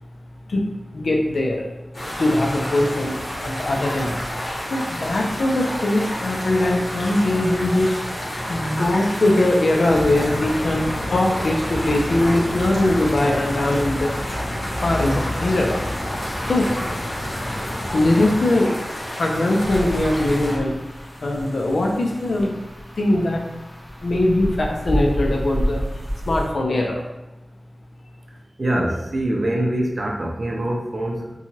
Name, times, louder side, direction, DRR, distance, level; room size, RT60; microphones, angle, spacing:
voice 1, 0.5-1.7 2.2-8.0 8.5-14.4 14.7-15.8 16.4-16.7 17.9-18.8 19.2-22.5 23.0-23.4 24.0-25.8 26.3-27.0, left 1 dB, 85° left, 0 dB, 0.5 m, -21 dB
sound 1, 1.9-20.6, equal, 60° left, 1.1 m, -30 dB
sound 2, 9.9-18.4, left 1 dB, 40° left, 0.6 m, -30 dB
sound 3, 19.6-26.5, equal, 10° left, 1.4 m, -30 dB
voice 2, 28.6-31.4, right 1 dB, 60° right, 0 dB, 0.4 m, -24 dB
2.8 x 2.3 x 2.7 m, 1.0 s
cardioid pair, 40°, 0 cm